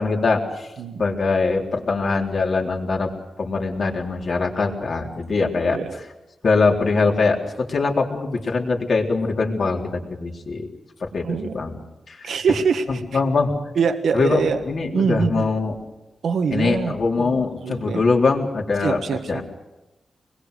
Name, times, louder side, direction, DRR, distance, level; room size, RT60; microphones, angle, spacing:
voice 1, 0.0-0.7 1.0-3.1 3.4-5.8 6.4-10.7 11.0-11.8 12.1-12.3 12.9-13.5 14.1-15.8 16.5-19.0 19.3-19.4, left 4 dB, 55° left, 1 dB, 3.8 m, -22 dB
voice 2, 5.6-6.0 11.2-11.6 12.2-13.2 13.7-14.6 14.9-15.5 16.2-18.0 18.8-19.4, right 6 dB, 90° right, 6 dB, 1.5 m, -24 dB
26.5 x 21.0 x 6.5 m, 1.0 s
wide cardioid pair, 135°, 0 cm